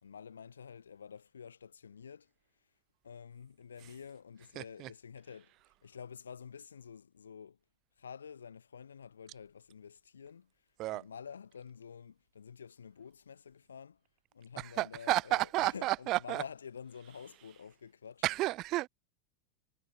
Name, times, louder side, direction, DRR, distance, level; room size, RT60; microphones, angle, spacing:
voice 1, 0.0-2.3 3.0-5.5 5.8-7.6 8.0-10.5 10.9-14.0 14.3-18.2, left 7 dB, 70° left, 3.5 m, -49 dB
voice 2, 4.6-4.9 10.8-11.0 14.6-16.4 18.2-18.9, right 18 dB, 35° right, 3.8 m, -32 dB
figure-of-eight pair, 90°, 0 cm